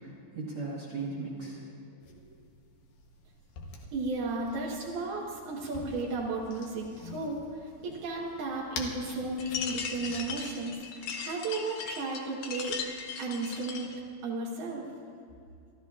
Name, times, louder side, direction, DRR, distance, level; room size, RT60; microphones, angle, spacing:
voice 1, 0.0-2.4, right 3 dB, 50° right, -4 dB, 1.8 m, -39 dB
sound 1, 2.0-10.5, left 4 dB, 65° left, 2.3 m, -47 dB
voice 2, 3.9-12.8 13.2-13.9 14.2-14.9, right 3 dB, 80° right, -4 dB, 3.3 m, -34 dB
sound 2, 9.4-14.0, left 6 dB, 90° left, 1.4 m, -38 dB
27.0 x 13.0 x 2.4 m, 2.3 s
omnidirectional pair, 4.4 m